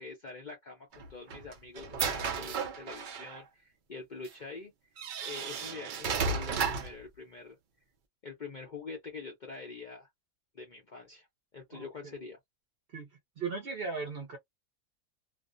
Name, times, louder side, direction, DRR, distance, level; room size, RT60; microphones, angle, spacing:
voice 1, 0.0-4.7 5.2-7.6 8.2-10.1 10.5-11.3 11.5-12.4, left 4 dB, 50° left, 0.6 m, -45 dB
sound 1, 0.9-3.4 4.3-4.4 5.0-7.0, right 5 dB, 80° right, 0.4 m, -34 dB
voice 2, 11.7-12.2 12.9-13.1 13.4-14.4, right 4 dB, 55° right, 0.7 m, -37 dB
2.5 x 2.0 x 2.4 m
omnidirectional pair, 1.5 m